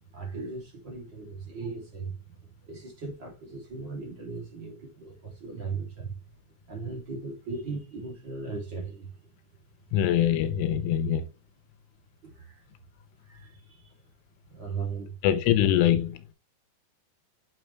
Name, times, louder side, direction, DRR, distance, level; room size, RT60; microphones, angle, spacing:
voice 1, 0.1-2.2 2.6-6.2 6.7-9.1 10.3-10.4 12.2-12.6 13.3-13.9 14.5-15.4, right 4 dB, 30° right, 2.4 m, -38 dB
voice 2, 9.9-11.2 15.2-16.3, left 11 dB, 80° left, 3.2 m, -23 dB
8.6 x 6.4 x 3.2 m
omnidirectional pair, 5.8 m